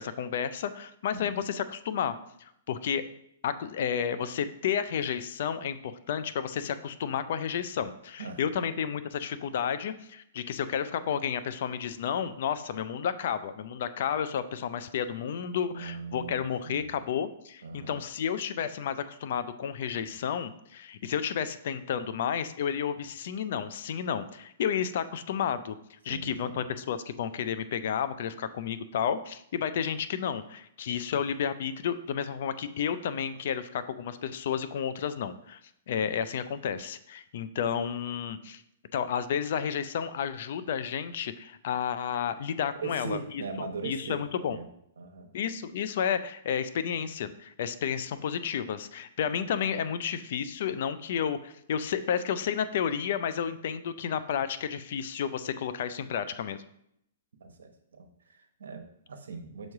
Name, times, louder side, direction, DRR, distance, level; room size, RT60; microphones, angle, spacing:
voice 1, 0.0-3.0 3.4-25.8 26.0-35.6 35.9-38.6 38.9-43.2 43.6-44.6 45.3-56.6, left 8 dB, 60° left, 12 dB, 0.4 m, -31 dB
voice 2, 15.7-16.4 16.6-17.0 17.6-18.0 26.1-26.6 36.0-36.1 42.8-44.7 45.0-45.3 57.4-59.7, right 4 dB, 85° right, 5 dB, 0.9 m, -40 dB
6.3 x 3.1 x 4.7 m, 0.75 s
hypercardioid pair, 150°, 0 cm